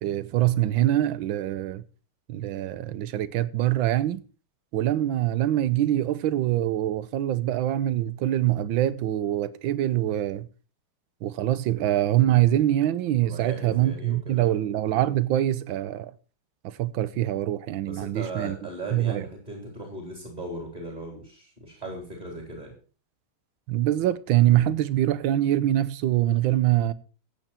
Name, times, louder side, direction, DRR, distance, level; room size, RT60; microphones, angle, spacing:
voice 1, 0.0-1.8 2.3-4.2 4.7-10.5 11.2-16.1 16.6-18.6 18.9-19.3 23.7-26.9, right 13 dB, 70° right, 1.4 m, -24 dB
voice 2, 13.2-14.6 17.9-22.8, right 2 dB, 20° right, 3.7 m, -38 dB
15.0 x 9.1 x 4.4 m
omnidirectional pair, 2.4 m